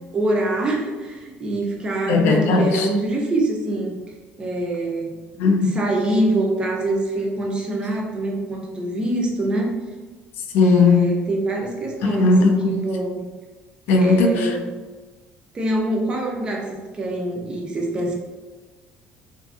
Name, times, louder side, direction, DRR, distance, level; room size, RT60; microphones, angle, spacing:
voice 1, 0.1-4.0 4.4-5.1 5.6-9.7 10.6-13.3 13.9-14.7 15.5-18.1, right 1 dB, 20° right, 0 dB, 0.4 m, -24 dB
voice 2, 2.1-2.9 5.4-5.7 10.5-11.1 12.2-12.9 13.9-14.5, left 3 dB, 65° left, 3 dB, 0.3 m, -17 dB
2.5 x 2.4 x 2.4 m, 1.3 s
cardioid pair, 160°, 4 cm